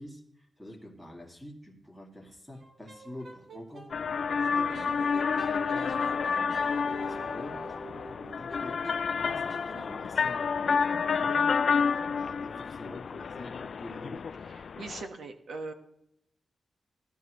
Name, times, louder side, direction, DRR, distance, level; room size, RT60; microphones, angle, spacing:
voice 1, 0.0-3.9 4.4-11.5 11.8-14.3, left 1 dB, ahead, 1 dB, 2.2 m, -47 dB
sound 1, 2.5-3.9 4.7-10.2, right 2 dB, 50° right, 1.8 m, -47 dB
sound 2, 3.9-15.0, left 5 dB, 55° left, 0.4 m, -29 dB
voice 2, 4.5-4.9 14.5-15.7, right 3 dB, 85° right, 5 dB, 1.3 m, -41 dB
17.0 x 12.0 x 3.1 m, 0.77 s
wide cardioid pair, 175°, 0 cm